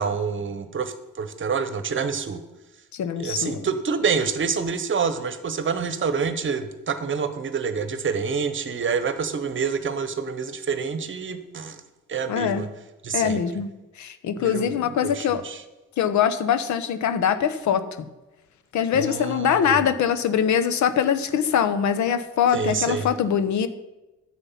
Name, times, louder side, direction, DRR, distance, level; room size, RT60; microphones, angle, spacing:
voice 1, 0.0-2.4 3.2-11.8 12.1-12.7 13.0-13.4 14.4-14.7 15.0-15.6 18.9-19.8 22.5-23.1, right 5 dB, 40° right, 11 dB, 1.0 m, -27 dB
voice 2, 2.9-3.7 12.3-12.6 13.1-13.7 14.0-15.4 16.0-17.8 18.7-23.7, left 8 dB, 70° left, 12 dB, 0.9 m, -23 dB
9.9 x 7.7 x 5.7 m, 1.1 s
cardioid pair, 90°, 30 cm